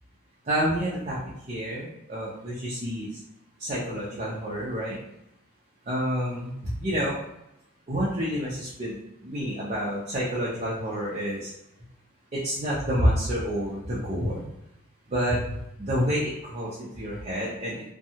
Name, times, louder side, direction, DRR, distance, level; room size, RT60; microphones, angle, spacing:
voice 1, 0.4-1.2 1.5-3.2 3.6-5.0 5.9-7.2 7.9-9.0 9.2-11.5 12.3-14.4 15.1-15.4 15.8-17.8, equal, 30° right, -7 dB, 0.5 m, -28 dB
2.7 x 2.2 x 2.7 m, 0.84 s
head